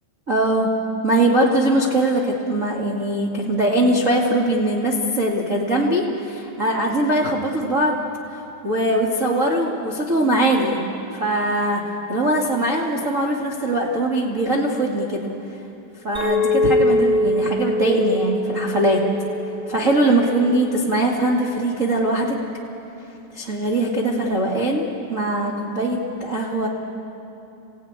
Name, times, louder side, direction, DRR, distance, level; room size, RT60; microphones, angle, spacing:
voice 1, 0.3-0.7 1.0-8.0 8.6-10.8 11.1-11.8 12.1-15.3 16.0-19.0 19.7-22.4 23.3-26.7, right 1 dB, 75° right, -3 dB, 0.7 m, -21 dB
Chink clink, 16.1-20.6, left 2 dB, ahead, 7.3 m, -23 dB
27.5 x 16.5 x 9.5 m, 2.9 s
omnidirectional pair, 5.2 m